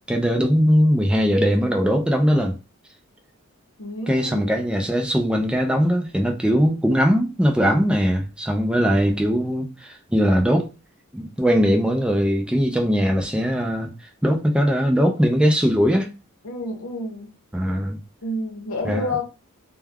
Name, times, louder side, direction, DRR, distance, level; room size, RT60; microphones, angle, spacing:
voice 1, 0.0-2.5 4.1-10.7 11.1-13.9 14.2-16.1 17.5-18.0 18.8-19.2, equal, 5° right, 0.4 m, -20 dB
voice 2, 3.8-4.5 16.4-17.3 18.2-19.2, left 2 dB, 80° left, 0.8 m, -29 dB
2.3 x 2.2 x 3.3 m
head